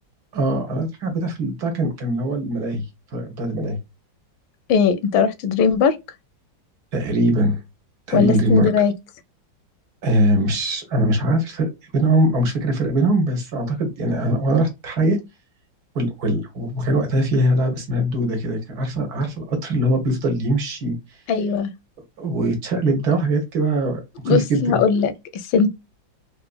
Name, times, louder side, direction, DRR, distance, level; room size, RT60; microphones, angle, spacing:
voice 1, 0.3-2.8 3.1-3.8 6.9-7.6 8.1-8.7 10.0-15.2 15.9-21.0 22.2-24.8, right 1 dB, 60° right, 1.5 m, -21 dB
voice 2, 4.7-6.0 8.1-8.9 21.3-21.7 24.2-25.7, left 6 dB, 85° left, 1.4 m, -19 dB
3.9 x 2.5 x 2.3 m
omnidirectional pair, 2.1 m